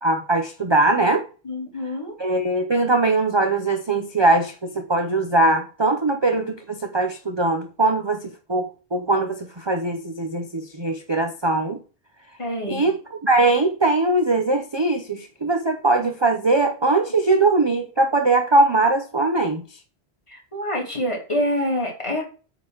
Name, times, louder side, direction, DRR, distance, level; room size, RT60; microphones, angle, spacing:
voice 1, 0.0-1.2 2.2-11.8 12.7-19.6, right 2 dB, 30° right, 0.7 m, -21 dB
voice 2, 1.4-2.1 12.4-12.9 20.3-22.2, equal, 30° left, 3.1 m, -26 dB
8.8 x 4.0 x 6.3 m
omnidirectional pair, 1.1 m